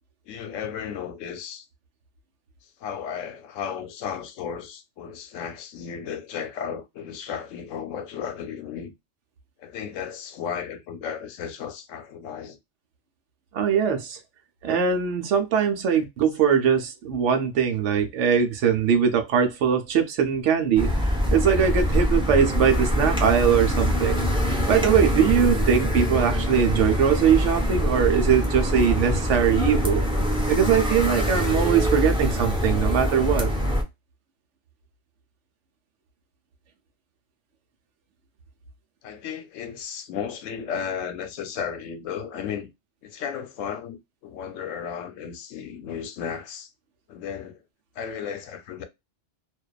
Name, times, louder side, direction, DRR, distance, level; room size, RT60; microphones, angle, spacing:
voice 1, 0.3-1.7 2.8-8.9 9.6-12.6 39.0-42.7 43.0-46.7 47.1-47.6 48.0-48.8, left 7 dB, 90° left, 1.0 m, -34 dB
voice 2, 13.5-14.2 14.6-20.9 21.3-24.3 24.7-30.0 30.5-33.5, right 7 dB, 75° right, 1.0 m, -21 dB
sound 1, 20.8-33.8, equal, 5° right, 0.4 m, -24 dB
2.5 x 2.2 x 2.3 m
omnidirectional pair, 1.3 m